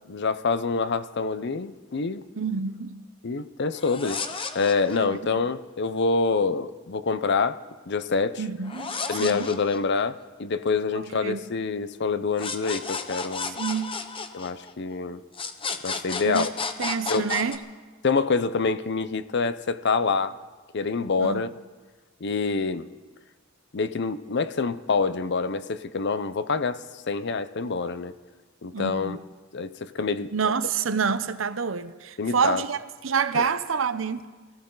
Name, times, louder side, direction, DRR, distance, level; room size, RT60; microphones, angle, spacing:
voice 1, 0.1-2.2 3.2-4.2 4.5-7.6 7.9-8.4 9.1-13.6 14.3-15.2 15.8-16.5 17.1-17.3 18.0-20.4 20.7-21.5 22.2-22.9 23.7-28.1 28.6-29.2 29.5-30.3 32.2-32.6 33.3-33.5, left 4 dB, 60° left, 0.7 m, -26 dB
voice 2, 2.4-3.1 4.9-5.1 8.4-9.5 10.9-11.5 13.6-14.0 16.2-16.5 16.8-17.6 21.2-21.5 28.7-29.2 30.3-34.3, right 6 dB, 70° right, 0.7 m, -28 dB
sound 1, 3.7-5.2 8.6-10.2 12.4-14.9 15.3-17.6, left 4 dB, 25° left, 0.9 m, -33 dB
24.0 x 15.0 x 4.0 m
head